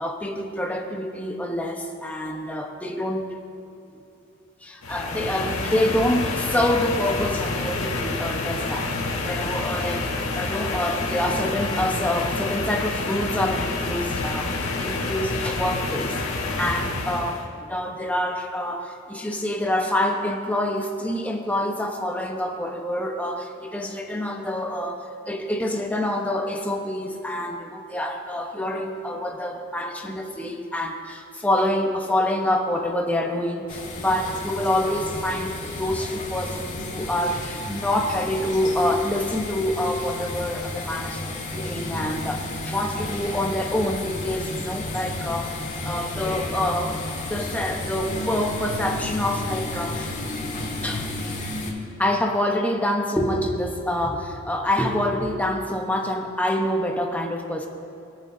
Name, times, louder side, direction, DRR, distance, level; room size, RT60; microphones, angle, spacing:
voice 1, 0.0-3.3 3.9-4.0 4.6-8.9 9.2-47.0 47.3-50.2 50.8-51.1 52.0-57.7, left 1 dB, 5° left, 1 dB, 1.1 m, -26 dB
sound 1, 4.8-17.4, left 3 dB, 80° left, 1.5 m, -28 dB
sound 2, 33.7-51.7, left 2 dB, 35° left, 1.9 m, -32 dB
23.0 x 9.1 x 2.8 m, 2.8 s
head